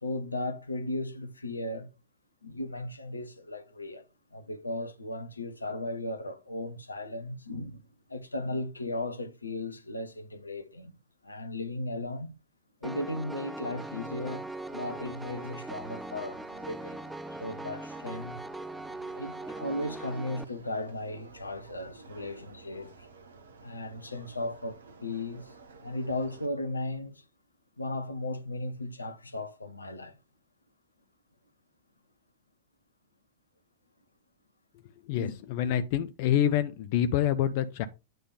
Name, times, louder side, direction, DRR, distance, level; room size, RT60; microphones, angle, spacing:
voice 1, 0.0-1.9 2.4-4.0 4.3-7.8 8.1-10.9 11.2-12.4 12.8-14.5 14.7-17.0 17.4-18.4 19.1-23.1 23.6-25.5 25.8-27.2 27.8-30.1 35.1-35.3, left 2 dB, 80° left, 0.9 m, -36 dB
Piano, 12.8-20.4, right 2 dB, 5° right, 0.3 m, -40 dB
sound 1, 13.7-26.5, right 4 dB, 70° right, 1.2 m, -52 dB
voice 2, 35.1-37.9, left 10 dB, 50° left, 0.6 m, -27 dB
9.1 x 3.4 x 5.3 m
figure-of-eight pair, 90°, 0 cm